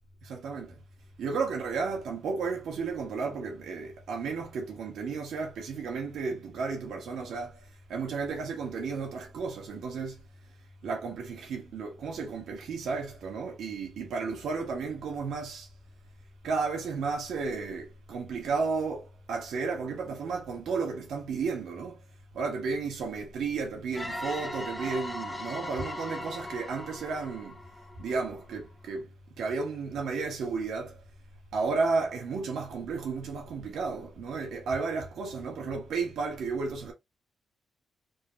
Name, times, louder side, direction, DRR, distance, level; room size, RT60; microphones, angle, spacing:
voice 1, 0.2-0.8 1.2-10.2 10.8-15.7 16.4-22.0 22.3-27.6 28.0-31.0 31.5-36.9, right 4 dB, 85° right, 1.2 m, -33 dB
sound 1, 23.9-28.5, left 1 dB, 10° left, 0.5 m, -39 dB
3.7 x 2.3 x 2.8 m
cardioid pair, 105°, 0 cm